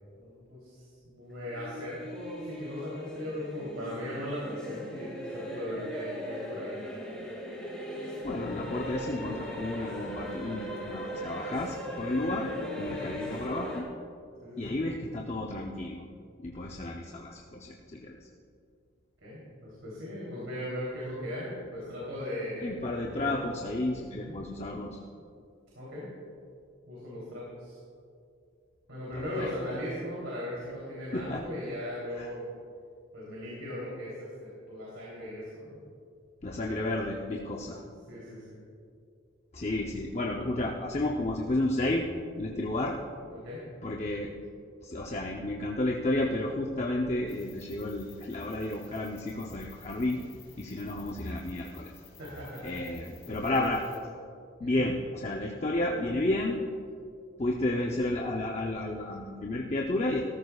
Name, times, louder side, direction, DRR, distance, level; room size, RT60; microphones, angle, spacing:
voice 1, 0.1-6.9 12.7-13.0 14.4-14.8 19.2-22.7 23.2-23.3 24.1-24.4 25.7-26.1 26.9-27.8 28.9-32.5 33.1-35.8 37.6-37.7 38.1-38.6 43.3-43.6 52.2-52.8 53.4-53.7 54.6-54.8, left 1 dB, 70° right, -6 dB, 3.2 m, -38 dB
sound 1, 1.4-13.8, equal, 5° left, 2.1 m, -39 dB
voice 2, 8.2-13.9 14.6-16.0 16.4-18.2 22.6-25.0 29.1-29.5 31.1-31.4 32.2-32.3 36.4-37.8 39.5-42.1 42.4-43.0 43.8-44.3 44.8-50.2 50.6-51.9 52.6-53.8 54.6-56.6 57.4-60.2, left 2 dB, 30° left, 0 dB, 0.7 m, -32 dB
sound 2, 47.3-54.0, left 6 dB, 55° left, 3.3 m, -55 dB
18.0 x 14.0 x 2.4 m, 2.4 s
head